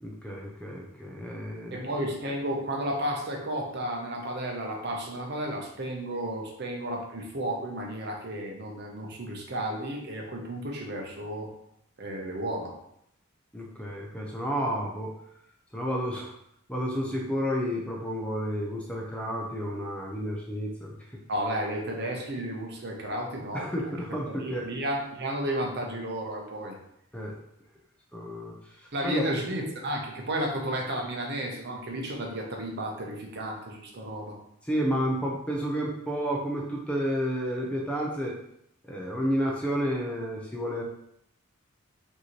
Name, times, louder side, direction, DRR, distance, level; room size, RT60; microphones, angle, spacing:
voice 1, 0.0-1.9 13.5-15.1 15.7-16.3 16.7-21.0 23.5-24.7 27.1-27.4 28.1-29.3 34.6-38.3 38.8-40.8, equal, 5° left, -2 dB, 0.5 m, -31 dB
voice 2, 1.7-11.5 12.0-12.7 21.3-23.7 24.3-26.8 28.9-34.4, right 1 dB, 50° right, 1 dB, 0.8 m, -32 dB
5.2 x 2.8 x 3.0 m, 0.75 s
head